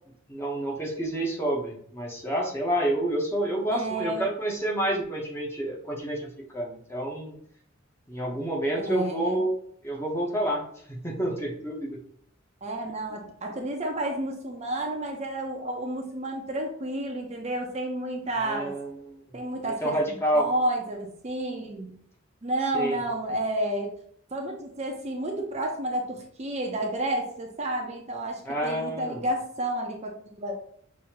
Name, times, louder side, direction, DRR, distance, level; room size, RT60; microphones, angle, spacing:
voice 1, 0.3-7.4 8.1-9.5 9.8-10.6 10.9-12.0 18.4-19.1 19.6-20.5 22.7-23.0 28.5-29.2, right 1 dB, 10° left, -2 dB, 0.9 m, -29 dB
voice 2, 3.7-4.3 8.8-9.4 12.6-18.7 19.3-21.9 22.4-23.9 24.3-30.6, right 1 dB, 35° right, 1 dB, 0.7 m, -31 dB
6.2 x 2.7 x 2.9 m, 0.64 s
head